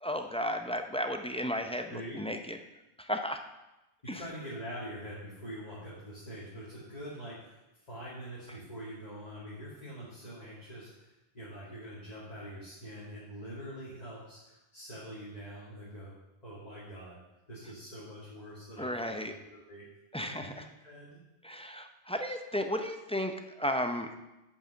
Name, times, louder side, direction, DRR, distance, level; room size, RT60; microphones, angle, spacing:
voice 1, 0.0-2.6 3.0-3.4 4.1-4.2 18.8-19.3 20.1-20.6 21.4-24.1, equal, 10° left, 5 dB, 0.4 m, -34 dB
voice 2, 1.9-2.2 4.0-16.1 16.4-17.2 17.5-19.8 20.2-21.2, equal, 35° left, -8 dB, 2.3 m, -44 dB
9.0 x 5.5 x 6.8 m, 0.97 s
omnidirectional pair, 1.2 m